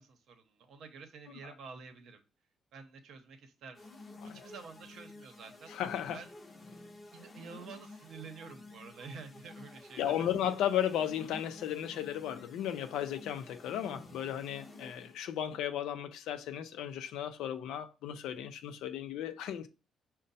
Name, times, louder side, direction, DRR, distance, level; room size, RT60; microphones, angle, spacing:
voice 1, 0.0-2.2 2.7-3.9 4.2-5.8 6.1-6.3 7.1-10.3, right 5 dB, 75° right, 0.8 m, -49 dB
sound 1, 3.7-15.3, left 2 dB, 30° left, 0.7 m, -52 dB
voice 2, 5.7-6.2 10.0-19.7, left 10 dB, 90° left, 0.4 m, -35 dB
5.2 x 2.1 x 4.0 m
cardioid pair, 90°, 0 cm